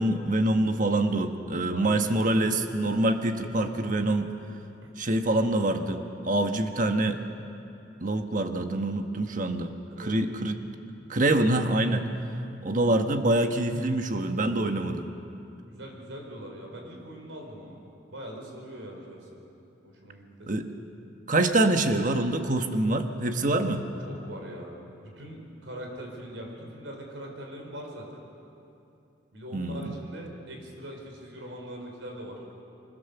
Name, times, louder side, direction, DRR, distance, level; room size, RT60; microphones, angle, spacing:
voice 1, 0.0-4.3 5.0-7.2 8.0-9.7 10.0-10.6 11.1-12.1 12.6-15.1 20.5-20.7 21.3-23.8 29.5-29.9, right 2 dB, 45° right, 6 dB, 1.3 m, -25 dB
voice 2, 1.7-2.2 4.8-4.9 9.9-10.3 15.7-17.8 18.1-19.4 19.8-20.5 24.0-28.2 29.3-32.4, right 1 dB, 80° right, 1 dB, 4.6 m, -42 dB
25.0 x 22.0 x 6.9 m, 2.7 s
head